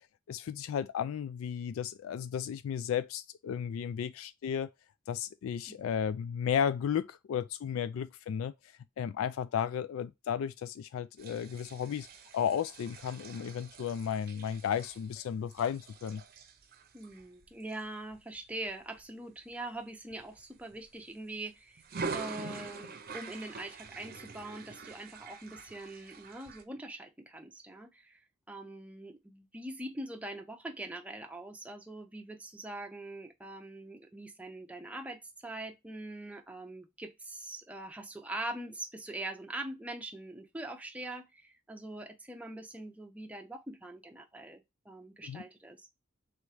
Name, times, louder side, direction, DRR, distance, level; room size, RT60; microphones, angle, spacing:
voice 1, 0.3-4.7 5.1-8.5 9.0-12.1 12.3-16.2 45.2-45.4, left 8 dB, 80° left, 0.3 m, -34 dB
sound 1, 11.2-19.0 19.5-19.8 20.1-21.2 21.8-26.6, right 4 dB, 45° right, 0.7 m, -45 dB
voice 2, 16.9-21.8 22.1-28.2 28.5-45.9, right 1 dB, 5° right, 0.6 m, -43 dB
3.3 x 3.1 x 4.7 m
head